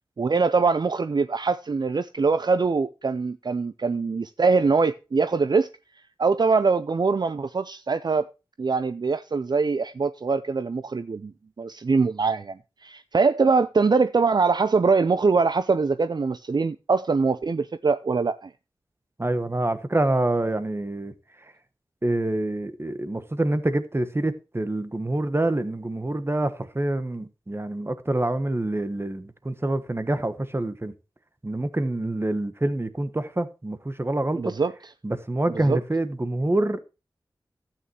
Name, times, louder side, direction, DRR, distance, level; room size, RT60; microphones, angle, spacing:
voice 1, 0.2-5.7 6.2-8.2 8.6-11.3 11.6-18.5 34.4-34.7 35.7-35.8, right 4 dB, 55° right, 0.5 m, -23 dB
voice 2, 19.2-21.1 22.0-30.9 31.4-34.5 35.0-36.8, right 2 dB, 30° right, 1.1 m, -26 dB
12.5 x 8.8 x 2.9 m
cardioid pair, 45°, 9 cm